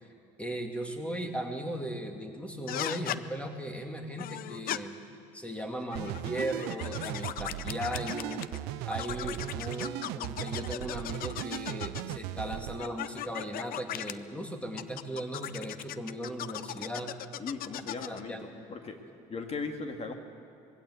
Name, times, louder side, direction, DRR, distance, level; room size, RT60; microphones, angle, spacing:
voice 1, 0.4-4.9 5.3-8.4 8.9-17.1 18.1-18.6, right 1 dB, 5° left, 3 dB, 2.6 m, -37 dB
sound 1, 2.7-3.2 4.2-4.8 5.8-8.6 8.9-12.2 12.8-14.1 14.8-18.2, left 12 dB, 65° left, 0.7 m, -38 dB
sound 2, 5.9-12.8, right 16 dB, 85° right, 0.5 m, -38 dB
voice 2, 17.4-19.0 19.3-20.1, left 4 dB, 40° left, 5 dB, 2.0 m, -38 dB
21.5 x 16.5 x 8.4 m, 2.4 s
supercardioid pair, 85°, 17 cm